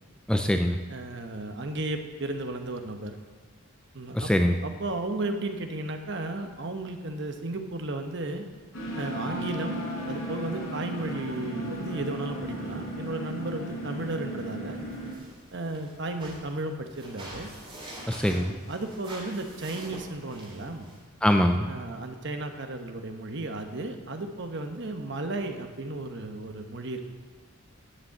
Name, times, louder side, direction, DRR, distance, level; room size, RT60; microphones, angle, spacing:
voice 1, 0.3-0.8 4.1-4.5 18.1-18.5 21.2-21.7, equal, 5° left, 5 dB, 0.4 m, -23 dB
voice 2, 0.9-3.2 3.9-4.3 4.6-8.4 9.0-14.8 15.5-17.5 18.3-20.9 21.7-27.0, right 2 dB, 55° right, 6 dB, 1.1 m, -34 dB
sound 1, 8.7-15.1, equal, 70° left, 4.4 m, -35 dB
sound 2, 14.8-21.0, right 1 dB, 25° right, 3.4 m, -45 dB
11.0 x 6.8 x 7.8 m, 1.4 s
head